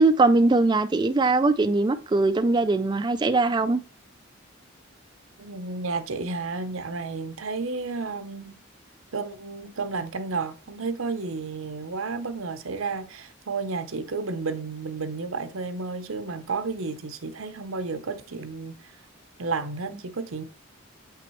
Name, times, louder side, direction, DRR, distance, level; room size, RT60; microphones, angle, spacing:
voice 1, 0.0-3.8, right 3 dB, 20° right, 0.3 m, -21 dB
voice 2, 5.4-8.6 9.1-18.8 19.4-20.4, right 4 dB, 85° right, 0.8 m, -32 dB
7.0 x 5.8 x 3.1 m
head